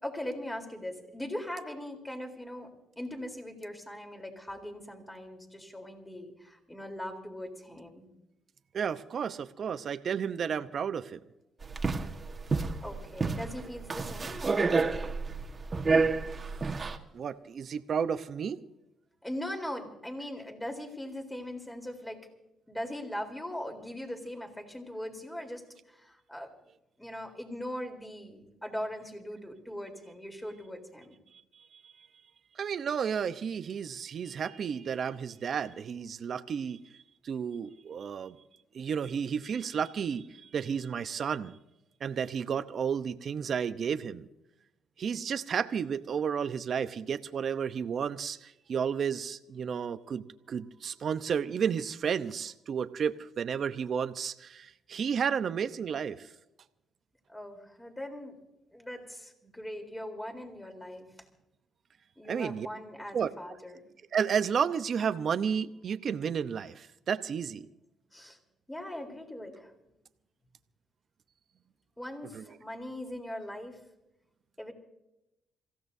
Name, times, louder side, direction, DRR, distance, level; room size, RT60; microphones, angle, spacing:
voice 1, 0.0-8.1 12.8-14.8 19.2-22.3 22.7-26.5 27.0-31.2 57.3-58.4 58.7-61.1 62.2-63.8 68.1-68.4 68.7-70.0 72.0-73.8 74.6-74.7, left 1 dB, 10° left, 3 dB, 3.8 m, -40 dB
voice 2, 8.7-11.2 16.4-16.7 17.1-18.6 32.6-36.8 37.2-38.4 38.7-41.6 42.0-44.3 45.0-56.3 62.3-62.7 63.1-63.3 64.1-67.7 72.3-72.4, right 7 dB, 55° right, 10 dB, 0.8 m, -32 dB
sound 1, 11.6-17.0, right 4 dB, 30° right, 1.5 m, -29 dB
27.5 x 16.0 x 2.7 m, 0.89 s
cardioid pair, 90°, 0 cm